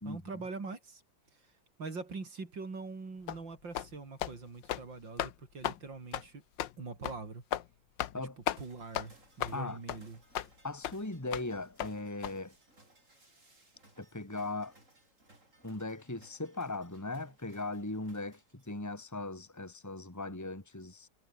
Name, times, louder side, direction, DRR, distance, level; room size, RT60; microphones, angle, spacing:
voice 1, 0.0-1.0 1.3-1.5 1.8-6.4 6.8-7.4 8.6-10.2, right 4 dB, 65° right, 4.6 m, -43 dB
sound 1, 3.3-3.4 3.7-3.9 4.2-4.3 4.6-4.9 5.2-5.3 5.6-5.8 6.1-6.3 6.6-6.7 7.0-7.2 7.5-7.7 8.0-8.2 8.5-8.6 8.9-9.1 9.4-9.6 9.9-10.0 10.3-10.5 10.8-10.9 11.3-11.5 11.8-11.9 12.2-12.3, left 11 dB, 65° left, 1.6 m, -35 dB
sound 2, 8.5-18.9, right 2 dB, 35° right, 7.0 m, -63 dB
voice 2, 10.6-12.5 14.0-14.8 15.6-21.1, left 2 dB, 10° left, 2.9 m, -39 dB
omnidirectional pair, 2.2 m